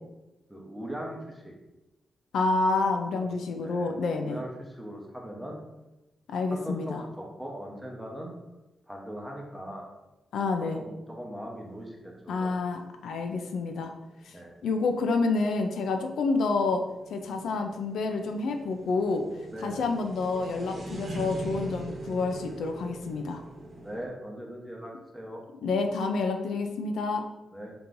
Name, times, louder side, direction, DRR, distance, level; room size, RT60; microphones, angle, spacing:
voice 1, 0.5-1.5 3.2-3.3 3.6-3.9 4.2-5.6 6.5-8.3 8.9-9.9 10.7-12.5 14.3-14.5 19.5-19.9 23.7-25.4 27.5-27.7, equal, 5° right, -1 dB, 0.9 m, -40 dB
voice 2, 2.3-4.4 6.3-7.0 10.3-10.8 12.3-13.9 14.3-14.4 14.6-16.8 17.1-19.2 19.6-23.4 25.6-27.2, left 3 dB, 85° left, 5 dB, 0.4 m, -28 dB
sound 1, 11.6-24.1, right 2 dB, 50° right, 1.0 m, -42 dB
5.2 x 2.9 x 2.6 m, 1.0 s
cardioid pair, 100°, 0 cm